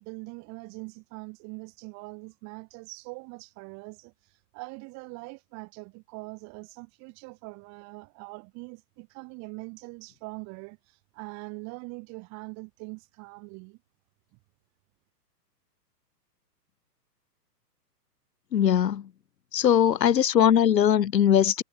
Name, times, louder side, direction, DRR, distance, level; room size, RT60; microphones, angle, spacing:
voice 1, 0.0-13.8, right 30 dB, 35° right, 7.2 m, -42 dB
voice 2, 18.5-19.1 19.5-21.6, left 9 dB, 85° left, 1.0 m, -20 dB
hypercardioid pair, 135°, 49 cm